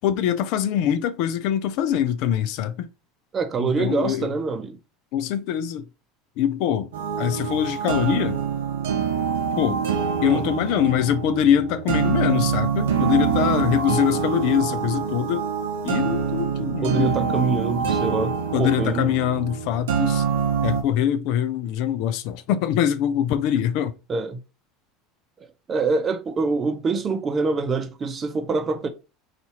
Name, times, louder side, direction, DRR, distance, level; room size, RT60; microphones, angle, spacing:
voice 1, 0.0-2.9 3.6-4.3 5.1-5.8 6.4-6.9 7.2-8.4 9.6-9.8 10.2-15.5 15.8-17.4 18.5-20.2 20.6-23.9, left 10 dB, 65° left, 0.4 m, -23 dB
voice 2, 3.3-4.8 10.2-10.5 16.8-19.1 24.1-24.4 25.4-28.9, right 4 dB, 30° right, 0.7 m, -25 dB
sound 1, 6.9-20.8, right 7 dB, 80° right, 0.6 m, -25 dB
2.8 x 2.5 x 4.2 m
hypercardioid pair, 85°, 0 cm